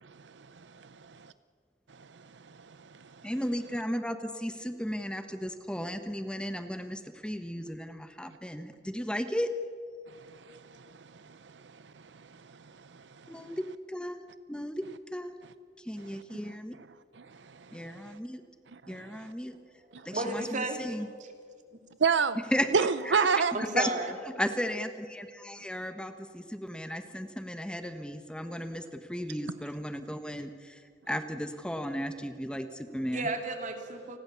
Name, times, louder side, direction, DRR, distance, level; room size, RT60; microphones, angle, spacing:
voice 1, 0.0-1.3 1.9-3.3 10.1-13.6 17.1-18.2 18.7-19.3 19.9-20.1 22.0-22.4 22.7-23.5, right 5 dB, 75° right, 14 dB, 0.6 m, -32 dB
voice 2, 3.2-9.5 13.3-14.2 14.5-14.8 15.1-15.3 15.8-16.7 17.7-18.4 18.9-19.6 20.0-21.1 22.5-22.7 23.0-23.9 24.4-33.3, equal, 5° left, 8 dB, 1.3 m, -35 dB
voice 3, 20.1-20.8 23.5-24.0 33.0-34.2, right 2 dB, 45° right, 5 dB, 3.1 m, -33 dB
29.5 x 20.5 x 7.1 m, 2.1 s
head